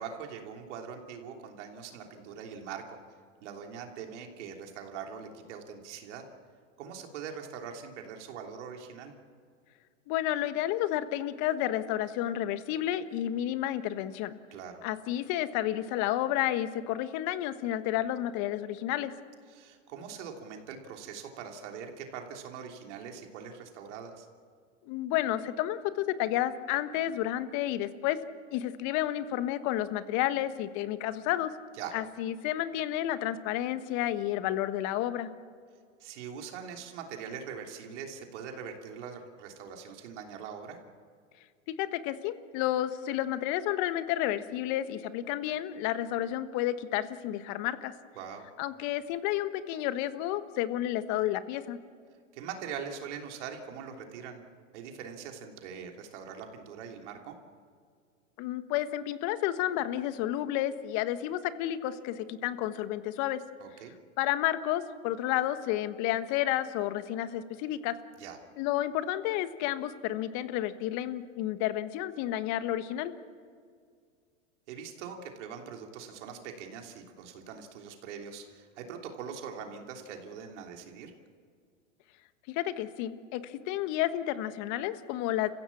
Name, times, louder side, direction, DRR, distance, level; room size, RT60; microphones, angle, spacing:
voice 1, 0.0-3.0 3.4-6.2 6.8-9.1 14.5-14.8 19.5-24.3 31.8-31.9 36.0-40.8 48.1-48.4 52.3-54.4 54.7-57.4 63.6-63.9 68.2-68.4 74.7-81.1, right 7 dB, 65° right, 2 dB, 3.2 m, -42 dB
voice 2, 10.1-14.4 14.8-19.1 24.9-28.2 28.5-31.5 31.9-35.3 41.8-47.9 48.6-51.8 58.4-63.4 64.2-68.0 68.6-73.1 82.5-85.5, left 13 dB, 50° left, 12 dB, 1.4 m, -31 dB
29.5 x 15.5 x 7.2 m, 2.1 s
hypercardioid pair, 105°, 38 cm